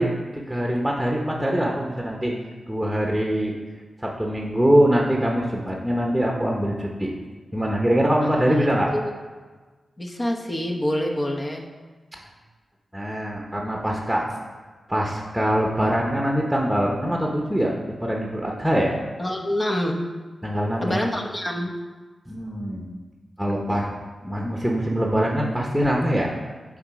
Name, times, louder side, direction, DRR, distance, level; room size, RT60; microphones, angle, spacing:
voice 1, 0.0-2.3 2.7-3.6 4.0-7.1 7.5-8.9 12.9-14.4 14.9-18.9 20.4-21.1 22.3-22.9 23.4-23.9 24.2-26.3, equal, 5° right, -1 dB, 1.0 m, -23 dB
voice 2, 8.2-8.6 8.9-9.1 10.0-11.7 19.2-20.0 20.8-21.7 23.6-23.7, left 1 dB, 30° left, 0 dB, 1.0 m, -27 dB
7.2 x 4.0 x 4.8 m, 1.3 s
cardioid pair, 50°, 0 cm